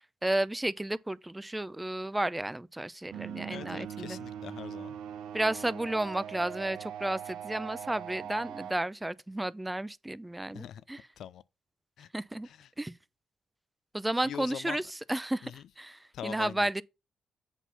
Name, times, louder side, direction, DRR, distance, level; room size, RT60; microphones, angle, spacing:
voice 1, 0.2-4.2 5.3-11.1 12.1-12.5 12.8-13.0 13.9-16.8, right 1 dB, 15° right, 0.6 m, -32 dB
sound 1, 3.1-8.7, right 9 dB, 80° right, 0.9 m, -41 dB
voice 2, 3.5-5.0 10.5-10.8 11.2-11.4 12.0-12.1 12.4-12.7 14.2-14.8 15.4-15.6 16.1-16.8, left 9 dB, 70° left, 0.4 m, -42 dB
8.1 x 4.2 x 5.6 m
hypercardioid pair, 45°, 0 cm